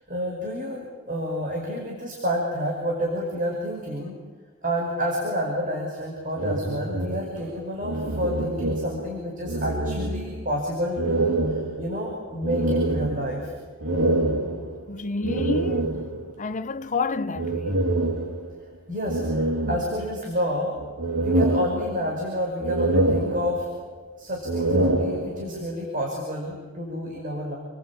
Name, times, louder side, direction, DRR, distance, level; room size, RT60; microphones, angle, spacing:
voice 1, 0.1-4.2 4.6-13.5 18.9-20.7 21.2-23.7 24.2-27.5, equal, 40° right, 5.6 m, -29 dB
sound 1, 6.4-9.2 9.4-10.6 11.0-16.4 17.3-18.6 19.1-20.4 20.8-22.3 22.6-23.9 24.4-25.7, right 2 dB, 90° right, 2.7 m, -26 dB
voice 2, 14.9-15.9 16.4-17.8, left 3 dB, 35° left, 0.8 m, -29 dB
30.0 x 21.5 x 8.7 m
head